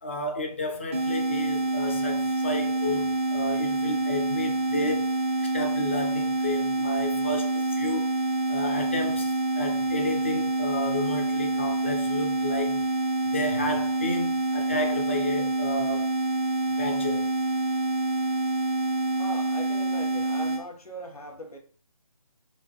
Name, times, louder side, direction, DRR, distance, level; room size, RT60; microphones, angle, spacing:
voice 1, 0.0-5.1 5.4-8.1 8.5-12.8 13.2-16.1 16.8-17.3, left 1 dB, 20° left, 0.5 m, -32 dB
sound 1, 0.9-20.6, right 2 dB, 25° right, 0.8 m, -27 dB
voice 2, 19.2-21.6, right 1 dB, 80° left, 1.4 m, -39 dB
4.4 x 3.8 x 3.1 m
figure-of-eight pair, 155°, 19 cm